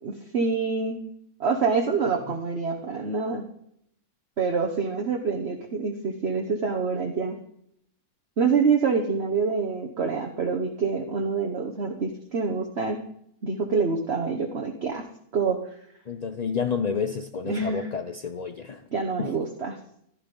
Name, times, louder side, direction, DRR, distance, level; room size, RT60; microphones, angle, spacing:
voice 1, 0.0-1.0 1.4-3.4 4.4-7.4 8.4-13.0 13.4-15.0 15.3-15.6 17.5-17.9 18.9-19.8, right 5 dB, 45° right, 3 dB, 1.3 m, -26 dB
voice 2, 16.1-18.8 19.2-19.3, left 6 dB, 65° left, 9 dB, 0.4 m, -30 dB
14.5 x 12.0 x 5.3 m, 0.72 s
omnidirectional pair, 1.6 m